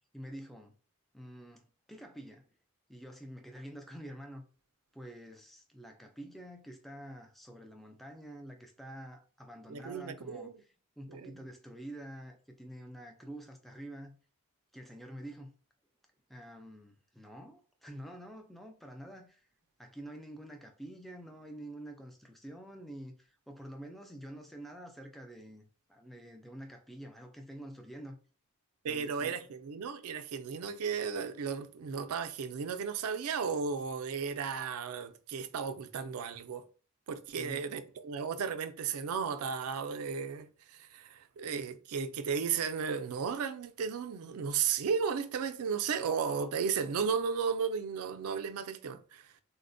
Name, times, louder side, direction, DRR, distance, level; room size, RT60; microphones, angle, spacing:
voice 1, 0.1-0.7 1.1-2.5 2.9-4.4 4.9-10.7 11.0-14.2 14.7-15.5 16.3-19.5 19.8-28.2 28.9-29.4 37.3-37.6, right 1 dB, ahead, 0.3 m, -47 dB
voice 2, 9.7-10.5 11.1-11.4 28.8-36.6 37.1-49.3, right 6 dB, 90° right, 0.4 m, -34 dB
4.0 x 2.1 x 2.5 m
head